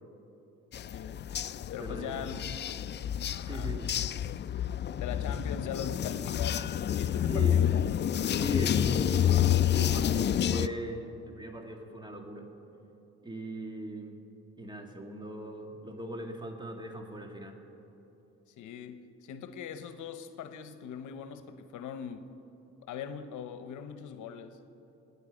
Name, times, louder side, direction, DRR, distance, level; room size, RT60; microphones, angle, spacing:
sound 1, 0.7-10.7, left 10 dB, 35° left, 0.4 m, -29 dB
voice 1, 0.8-1.4 1.7-2.6 3.4-3.7 5.0-7.7 18.6-22.3 22.8-24.6, left 8 dB, 80° left, 1.0 m, -41 dB
voice 2, 1.8-2.3 3.4-3.9 7.3-7.6 8.4-12.5 13.2-14.2 14.6-17.6, right 1 dB, 15° right, 2.0 m, -40 dB
27.5 x 9.8 x 5.1 m
cardioid pair, 90°, 30 cm